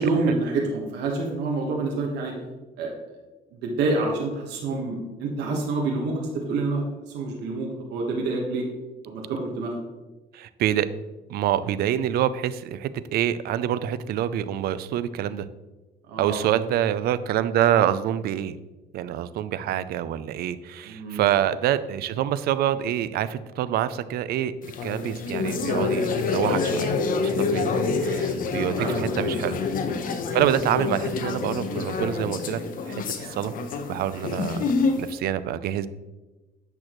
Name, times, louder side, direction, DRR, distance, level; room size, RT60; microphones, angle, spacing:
voice 1, 0.0-2.3 2.8-2.9 3.5-8.6 9.0-9.7 16.1-16.5 20.9-21.2 28.8-29.3 30.6-30.7, right 3 dB, 85° right, -1 dB, 1.3 m, -27 dB
voice 2, 10.3-10.9 11.3-15.5 16.2-18.6 18.9-26.9 27.2-29.6 30.3-32.6 32.9-33.5 33.9-34.7 35.0-35.9, right 11 dB, 65° right, 14 dB, 0.4 m, -26 dB
sound 1, 24.6-35.1, left 4 dB, 55° left, 0.9 m, -27 dB
8.7 x 6.1 x 3.0 m, 1.2 s
cardioid pair, 110°, 17 cm